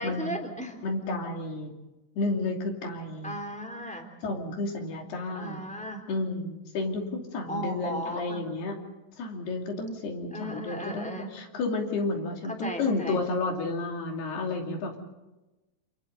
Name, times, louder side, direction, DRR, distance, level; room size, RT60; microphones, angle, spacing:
voice 1, 0.0-0.8 3.2-4.1 5.3-6.0 7.5-8.4 10.3-11.3 12.6-13.2, equal, ahead, 2 dB, 2.0 m, -35 dB
voice 2, 0.8-1.7 2.2-3.3 4.2-5.7 6.1-8.8 9.2-15.0, left 3 dB, 55° left, 2 dB, 4.5 m, -31 dB
28.5 x 28.5 x 4.0 m, 1.0 s
omnidirectional pair, 5.9 m